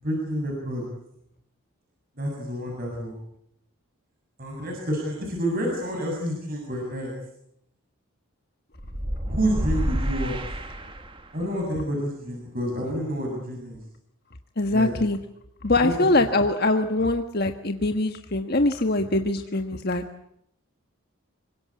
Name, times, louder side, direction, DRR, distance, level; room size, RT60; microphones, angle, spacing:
voice 1, 0.0-0.8 2.2-3.2 4.4-7.1 9.3-10.4 11.3-13.8 14.7-14.9 15.8-16.1, equal, 45° right, 0 dB, 7.1 m, -29 dB
sound 1, 8.8-11.4, equal, 25° right, 2.1 m, -29 dB
voice 2, 14.6-15.2 15.6-20.0, left 2 dB, 45° left, 6 dB, 1.4 m, -23 dB
26.5 x 23.0 x 8.5 m, 0.76 s
head